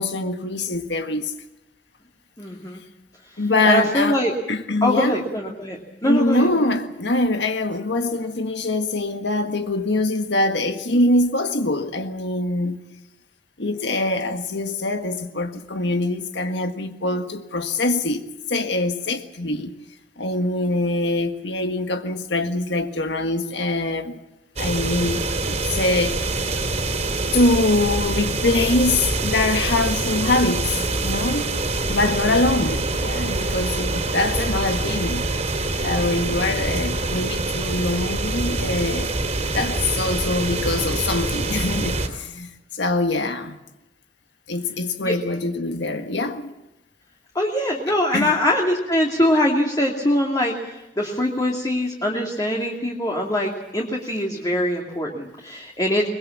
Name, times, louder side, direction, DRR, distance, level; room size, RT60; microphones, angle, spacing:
voice 1, 0.0-1.3 3.4-4.2 4.5-5.2 6.0-12.8 13.6-18.2 18.5-19.7 20.2-24.2 24.6-26.4 27.3-31.6 31.9-35.3 35.8-39.1 39.5-43.6 44.5-46.5 48.1-48.4, left 2 dB, 70° left, 1.6 m, -23 dB
voice 2, 2.4-2.8 3.7-4.3 4.8-6.5 32.3-32.4 45.0-45.1 47.3-56.1, left 1 dB, 20° left, 2.6 m, -23 dB
sound 1, 24.6-42.1, right 2 dB, 40° right, 3.0 m, -25 dB
23.5 x 21.0 x 7.3 m
head